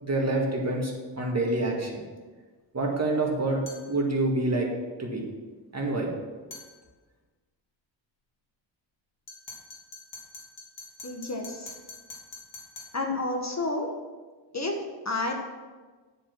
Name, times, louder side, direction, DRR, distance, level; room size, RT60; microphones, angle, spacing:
voice 1, 0.0-2.0 2.7-3.6 3.9-4.7 5.0-5.3 5.7-6.1, right 2 dB, 35° right, -1 dB, 1.9 m, -27 dB
sound 1, 3.7-3.9 6.5-6.7 9.3-13.0, left 3 dB, 80° left, 2.4 m, -44 dB
voice 2, 11.0-11.8 12.9-13.9 14.5-15.3, left 2 dB, 40° left, 2 dB, 1.2 m, -30 dB
10.0 x 5.1 x 6.0 m, 1.4 s
wide cardioid pair, 110°, 44 cm